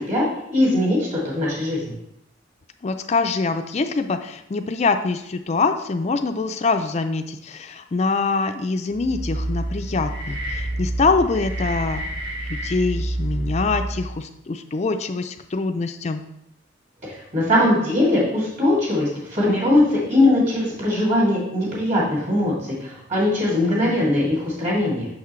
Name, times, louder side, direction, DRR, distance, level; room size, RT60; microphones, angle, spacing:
voice 1, 0.1-1.9 17.3-22.5 22.8-25.1, left 1 dB, 40° right, -5 dB, 2.7 m, -20 dB
voice 2, 2.8-12.1 12.5-16.2, left 4 dB, 35° left, 6 dB, 0.4 m, -24 dB
sound 1, 8.9-14.2, right 1 dB, 65° right, 1.0 m, -28 dB
6.3 x 5.9 x 3.2 m, 0.79 s
head